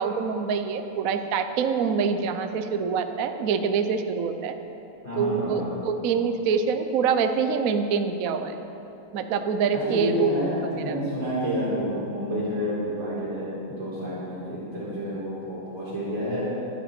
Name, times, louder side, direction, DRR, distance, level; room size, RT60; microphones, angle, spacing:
voice 1, 0.0-4.6 5.2-8.6 9.1-10.3 10.9-11.0, right 6 dB, 65° right, 7 dB, 0.8 m, -25 dB
voice 2, 5.0-5.7 9.7-16.5, equal, 30° right, -12 dB, 4.5 m, -29 dB
24.5 x 9.1 x 4.4 m, 3.0 s
omnidirectional pair, 2.3 m